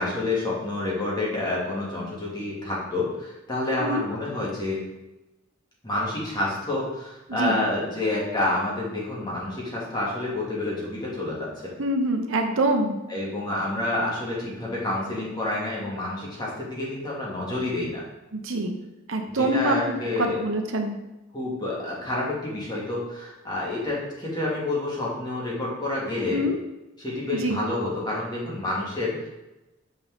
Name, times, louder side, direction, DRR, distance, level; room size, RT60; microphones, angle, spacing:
voice 1, 0.0-4.8 5.8-11.7 13.1-18.0 19.3-20.4 21.3-26.4 27.0-29.3, left 2 dB, 20° left, -5 dB, 2.3 m, -28 dB
voice 2, 11.8-13.0 18.3-18.8 19.1-19.8 20.2-21.0 26.3-26.6 27.4-27.6, right 1 dB, 75° right, 4 dB, 1.0 m, -25 dB
8.8 x 5.3 x 3.6 m, 0.99 s
head